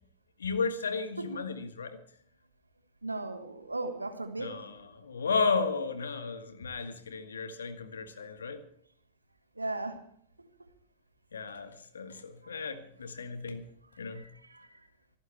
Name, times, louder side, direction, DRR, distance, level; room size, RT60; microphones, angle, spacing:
voice 1, 0.4-2.0 4.4-8.6 11.3-13.7 14.0-14.2, left 4 dB, 70° left, 1.5 m, -34 dB
voice 2, 3.0-4.7 9.6-10.0 14.1-14.2 14.5-14.7, right 2 dB, 80° right, 1.4 m, -36 dB
26.0 x 12.0 x 3.3 m
figure-of-eight pair, 90°, 0 cm